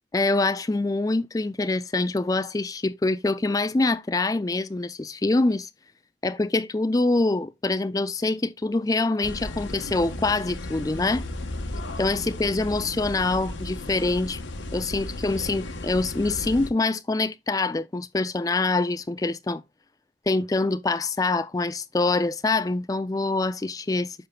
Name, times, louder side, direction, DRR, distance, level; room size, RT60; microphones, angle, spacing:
voice 1, 0.1-5.7 6.2-11.2 12.0-14.4 14.7-19.6 20.3-24.3, left 2 dB, 20° left, 0.4 m, -25 dB
sound 1, 9.2-16.7, left 1 dB, 90° left, 1.0 m, -35 dB
9.9 x 5.8 x 2.2 m
head